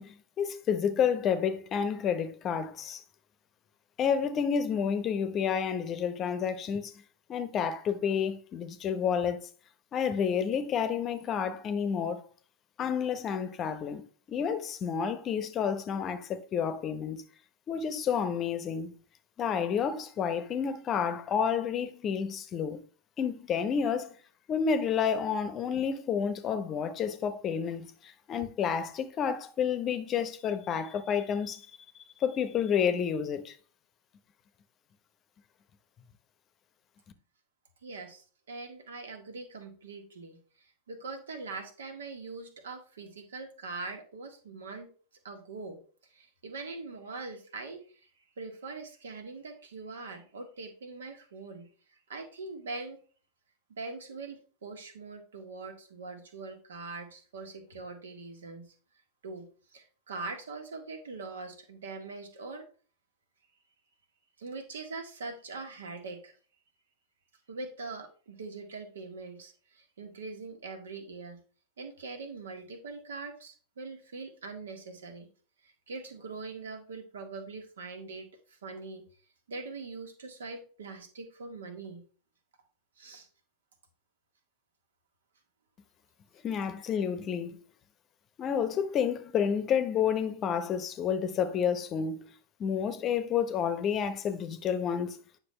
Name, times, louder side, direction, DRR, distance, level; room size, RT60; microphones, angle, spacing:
voice 1, 0.0-3.0 4.0-6.9 7.3-9.5 9.9-12.2 12.8-14.0 14.3-17.2 17.7-18.9 19.4-22.8 23.2-24.2 24.5-31.8 32.2-33.5 86.4-87.6 88.4-92.3 92.6-95.2, left 7 dB, 30° left, 0.9 m, -30 dB
voice 2, 37.8-44.9 45.2-45.8 46.1-47.8 48.4-51.7 52.1-53.0 53.8-58.7 59.2-62.6 64.4-66.3 67.5-71.4 71.8-75.3 75.6-79.0 79.5-82.0 83.0-83.3, right 3 dB, 65° right, 1.7 m, -42 dB
9.7 x 6.0 x 3.2 m
figure-of-eight pair, 90°, 0 cm